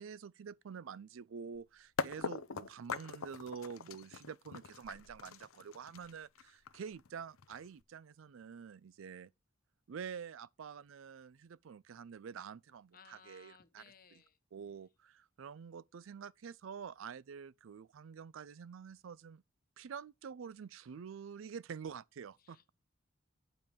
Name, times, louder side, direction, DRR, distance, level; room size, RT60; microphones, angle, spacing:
voice 1, 0.0-9.3 9.9-13.8 14.1-14.2 14.5-19.4 19.8-22.6, right 6 dB, 70° right, 0.4 m, -47 dB
sound 1, 1.5-1.6 2.0-7.8, left 5 dB, 85° left, 0.7 m, -42 dB
voice 2, 12.9-14.4 22.4-22.7, left 6 dB, 45° left, 1.0 m, -60 dB
8.9 x 5.3 x 6.2 m
head